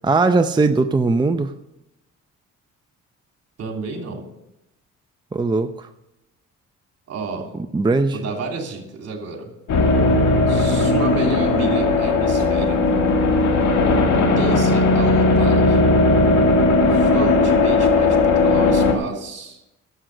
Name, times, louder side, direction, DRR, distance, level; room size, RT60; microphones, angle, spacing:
voice 1, 0.0-1.5 5.3-5.9 7.7-8.2, right 3 dB, 15° right, 8 dB, 0.6 m, -19 dB
voice 2, 3.6-4.2 7.1-7.5 8.1-9.5 10.5-12.8 14.2-15.8 16.9-19.6, right 3 dB, 55° right, 2 dB, 3.0 m, -30 dB
sound 1, 9.7-18.9, left 2 dB, 70° left, 2.2 m, -17 dB
11.5 x 7.7 x 6.5 m, 0.93 s
cardioid pair, 90°, 30 cm